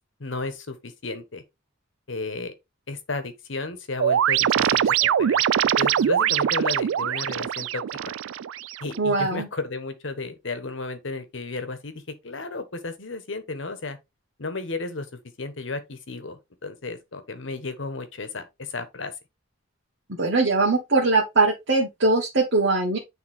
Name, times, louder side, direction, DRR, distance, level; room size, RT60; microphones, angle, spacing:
voice 1, 0.2-1.4 2.1-2.5 2.9-8.1 8.8-14.0 14.4-15.1 15.4-19.1, left 3 dB, 70° left, 1.2 m, -33 dB
sound 1, 4.0-9.0, right 9 dB, 80° right, 0.3 m, -23 dB
voice 2, 9.0-9.5 20.2-23.0, right 3 dB, 60° right, 1.6 m, -21 dB
9.0 x 3.6 x 3.5 m
head